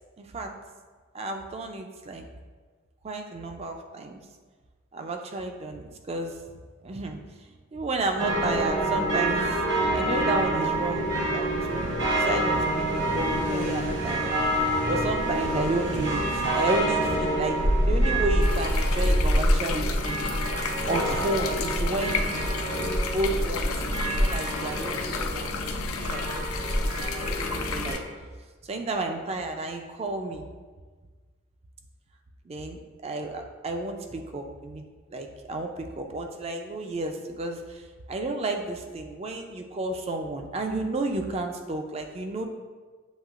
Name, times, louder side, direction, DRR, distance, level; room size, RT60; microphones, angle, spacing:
voice 1, 0.2-0.5 1.1-2.3 3.0-4.2 4.9-6.4 6.8-7.2 7.7-9.6 9.9-14.3 14.9-20.2 20.9-22.2 22.8-25.5 26.0-28.0 28.6-30.5 32.5-42.4, right 2 dB, 30° right, 4 dB, 0.3 m, -32 dB
sound 1, 8.2-27.9, right 1 dB, 55° right, 1.2 m, -26 dB
sound 2, 18.4-28.0, left 6 dB, 85° left, 0.4 m, -34 dB
7.3 x 3.0 x 2.4 m, 1.4 s
head